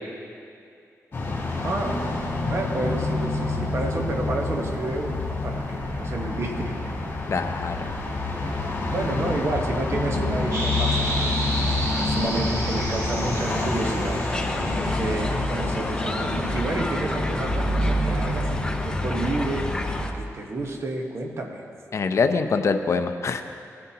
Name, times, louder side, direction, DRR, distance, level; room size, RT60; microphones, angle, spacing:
sound 1, 1.1-20.0, left 2 dB, 40° left, 2.1 m, -27 dB
voice 1, 1.6-2.0 2.5-6.9 8.9-14.2 14.9-19.7 20.1-21.6, right 2 dB, 50° right, 2 dB, 1.2 m, -30 dB
voice 2, 7.3-7.9 21.9-23.4, left 4 dB, 55° left, 7 dB, 0.6 m, -24 dB
sound 2, 10.5-16.3, right 1 dB, 70° right, 2.0 m, -33 dB
sound 3, 13.4-20.1, left 1 dB, 15° left, 0.6 m, -34 dB
17.5 x 9.8 x 2.9 m, 2.5 s
wide cardioid pair, 120°, 6 cm